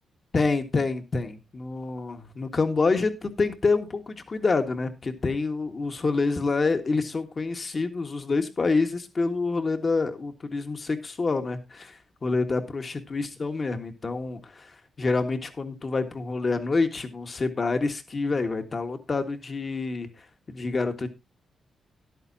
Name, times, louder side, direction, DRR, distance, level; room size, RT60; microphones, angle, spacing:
voice 1, 0.3-14.7 15.0-20.1 20.5-21.1, left 3 dB, 35° left, 7 dB, 1.6 m, -27 dB
13.0 x 11.0 x 2.8 m, 0.23 s
cardioid pair, 110°, 0 cm